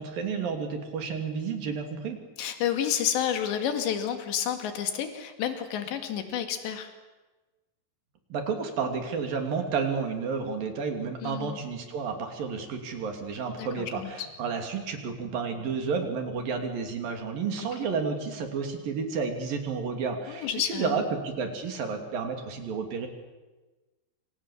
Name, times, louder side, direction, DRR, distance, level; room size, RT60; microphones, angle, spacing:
voice 1, 0.0-2.2 8.3-23.1, right 5 dB, 55° right, 5 dB, 4.3 m, -31 dB
voice 2, 2.4-6.9 11.2-11.6 13.6-14.3 17.6-17.7 20.3-21.1, left 9 dB, 80° left, 7 dB, 4.4 m, -30 dB
27.5 x 26.0 x 7.4 m, 1.2 s
omnidirectional pair, 5.0 m